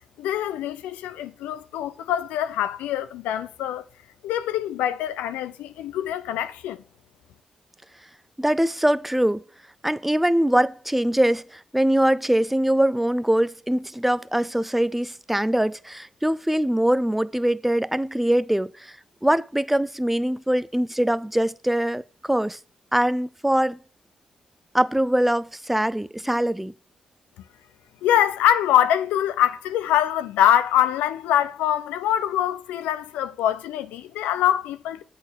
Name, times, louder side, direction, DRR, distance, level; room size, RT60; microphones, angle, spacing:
voice 1, 0.2-3.8 4.2-6.8 28.0-35.0, left 11 dB, 85° left, 0.5 m, -24 dB
voice 2, 8.4-9.4 9.8-19.0 19.2-22.6 22.9-23.8 24.7-26.7, right 1 dB, 5° right, 0.4 m, -22 dB
7.9 x 4.4 x 6.3 m
supercardioid pair, 45°, 3 cm